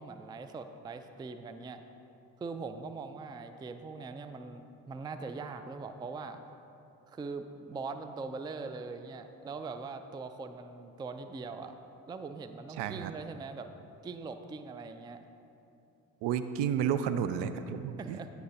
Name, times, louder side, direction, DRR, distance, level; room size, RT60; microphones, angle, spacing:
voice 1, 0.0-1.8 2.4-6.4 7.1-11.8 12.1-13.7 14.0-15.2 18.0-18.3, right 4 dB, 10° right, 9 dB, 0.3 m, -41 dB
voice 2, 12.8-13.1 16.2-18.2, right 8 dB, 60° right, 11 dB, 0.6 m, -31 dB
17.5 x 5.8 x 2.7 m, 2.8 s
figure-of-eight pair, 40°, 48 cm